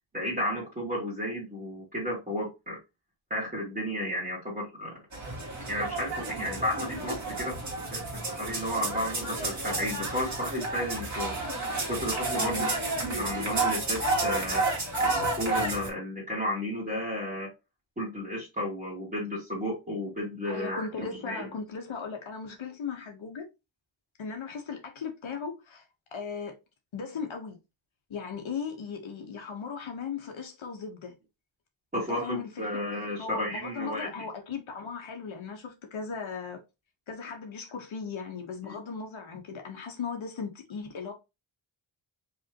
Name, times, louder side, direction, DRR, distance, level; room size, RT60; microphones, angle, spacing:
voice 1, 0.1-2.8 3.3-4.9 5.7-7.6 7.9-8.0 8.4-11.3 11.9-14.6 15.0-17.5 18.0-21.5 31.9-34.1 38.6-38.8, equal, 20° right, 2.0 m, -33 dB
sound 1, 5.1-15.9, right 2 dB, 35° right, 2.0 m, -31 dB
voice 2, 12.4-12.7 20.5-23.4 24.2-25.8 26.1-26.5 26.9-27.6 28.1-31.1 31.9-32.6 33.2-36.6 37.1-41.1, left 5 dB, 75° left, 1.2 m, -37 dB
5.2 x 3.5 x 2.9 m
wide cardioid pair, 170°, 48 cm